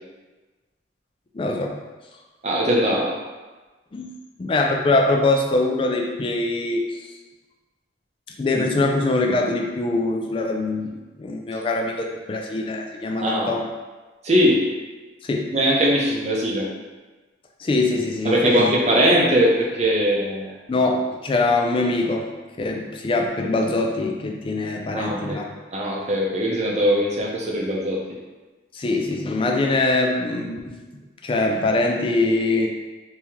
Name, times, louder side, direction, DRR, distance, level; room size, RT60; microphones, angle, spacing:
voice 1, 1.3-1.8 3.9-4.1 4.4-6.9 8.4-13.7 15.2-15.5 17.6-18.7 20.7-22.3 22.6-25.5 28.7-30.8 31.2-32.7, left 2 dB, 30° left, 2 dB, 0.3 m, -23 dB
voice 2, 2.4-3.1 11.5-11.6 13.2-13.5 14.2-14.7 15.5-16.7 18.2-20.5 24.9-25.4 25.7-28.0, equal, 35° right, -2 dB, 0.6 m, -20 dB
3.5 x 2.8 x 3.0 m, 1.2 s
head